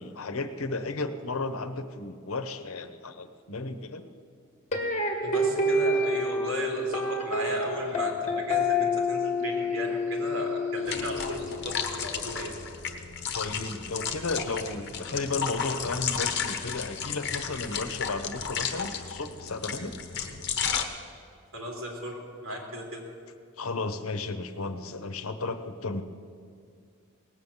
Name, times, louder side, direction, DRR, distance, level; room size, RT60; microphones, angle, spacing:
voice 1, 0.0-4.0 13.3-19.9 23.6-26.0, left 3 dB, 85° left, 9 dB, 0.9 m, -34 dB
sound 1, 4.7-11.8, left 2 dB, 35° left, 1.9 m, -28 dB
voice 2, 5.2-12.5 21.5-23.0, equal, 75° right, 0 dB, 3.3 m, -35 dB
sound 2, 10.9-20.8, left 7 dB, 55° left, 1.1 m, -33 dB
18.5 x 8.2 x 7.3 m, 2.3 s
head